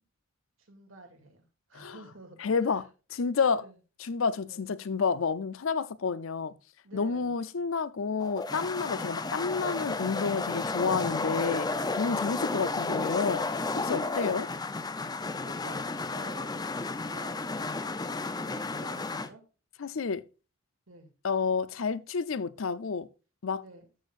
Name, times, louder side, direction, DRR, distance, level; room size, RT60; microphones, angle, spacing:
voice 1, 0.6-2.8 3.5-3.8 4.4-4.7 6.8-7.3 8.9-9.2 12.1-12.6 13.8-14.4 15.5-19.4 20.9-21.1 23.6-23.9, right 2 dB, 75° right, 2.5 m, -51 dB
voice 2, 2.4-3.7 4.0-6.6 6.9-14.5 19.8-20.3 21.2-23.1 23.4-23.6, left 5 dB, 70° left, 0.6 m, -30 dB
sound 1, 8.2-19.3, left 3 dB, 20° left, 0.5 m, -32 dB
13.0 x 6.4 x 2.5 m
head